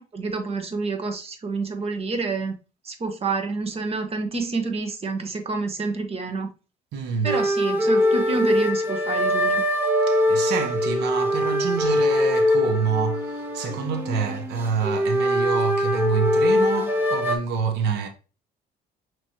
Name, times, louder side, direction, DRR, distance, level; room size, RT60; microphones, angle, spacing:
voice 1, 0.0-2.5 2.8-6.5 7.2-9.6, right 3 dB, 35° right, 1.1 m, -28 dB
voice 2, 6.9-7.4 10.1-18.1, right 6 dB, 80° right, 0.9 m, -27 dB
sound 1, 7.2-17.4, left 1 dB, 10° right, 1.1 m, -22 dB
6.1 x 3.1 x 2.8 m
cardioid pair, 110°, 17 cm